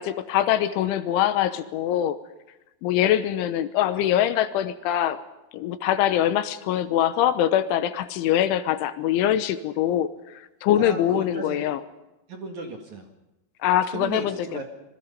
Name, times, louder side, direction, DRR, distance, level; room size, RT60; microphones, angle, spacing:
voice 1, 0.0-2.2 2.8-5.2 5.5-10.1 10.6-11.8 13.6-14.3, left 11 dB, 85° left, 12 dB, 3.4 m, -23 dB
voice 2, 10.7-11.7 12.3-13.1 13.9-14.6, right 3 dB, 50° right, 4 dB, 2.7 m, -35 dB
26.5 x 22.0 x 5.5 m, 0.99 s
omnidirectional pair, 5.6 m